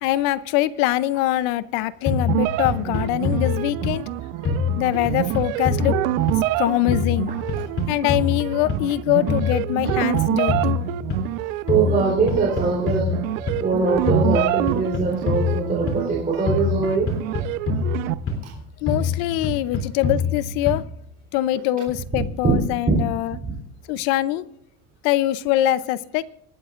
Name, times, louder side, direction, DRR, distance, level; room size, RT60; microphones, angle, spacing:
voice 1, 0.0-4.0 4.8-6.0 6.6-7.3 7.9-10.8 18.8-20.8 21.3-23.4 23.9-24.4 25.0-26.2, left 14 dB, 60° left, 17 dB, 0.7 m, -23 dB
sound 1, 2.1-4.1 4.4-6.6 6.9-9.0 9.3-11.4 11.7-13.7 14.1-16.2 16.5-18.6 18.9-21.0, left 4 dB, 30° left, 3.0 m, -26 dB
sound 2, 2.3-18.1, right 17 dB, 90° right, 0.9 m, -27 dB
voice 2, 11.7-13.2 13.6-17.1 18.4-18.5 22.1-22.6 22.9-23.0, right 4 dB, 20° right, -5 dB, 3.5 m, -22 dB
26.0 x 12.0 x 2.5 m, 0.76 s
cardioid pair, 155°, 40 cm